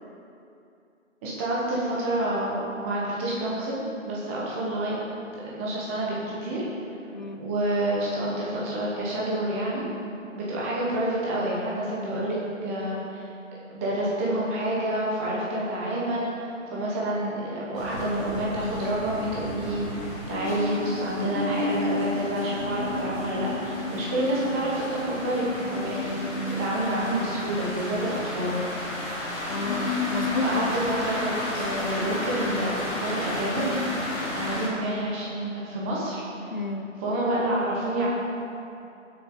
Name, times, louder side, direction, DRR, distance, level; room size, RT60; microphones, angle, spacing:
voice 1, 1.2-2.5 2.8-4.9 5.6-6.6 7.4-9.9 10.3-13.2 13.7-28.6 30.4-33.8 34.3-36.5 37.0-38.1, right 1 dB, 10° right, -5 dB, 1.1 m, -28 dB
voice 2, 7.1-7.4 29.5-30.8 36.5-36.9, left 2 dB, 35° left, 5 dB, 0.5 m, -30 dB
sound 1, 17.7-34.7, left 2 dB, 15° left, 2.2 m, -31 dB
16.5 x 8.0 x 3.8 m, 2.7 s
figure-of-eight pair, 155°, 39 cm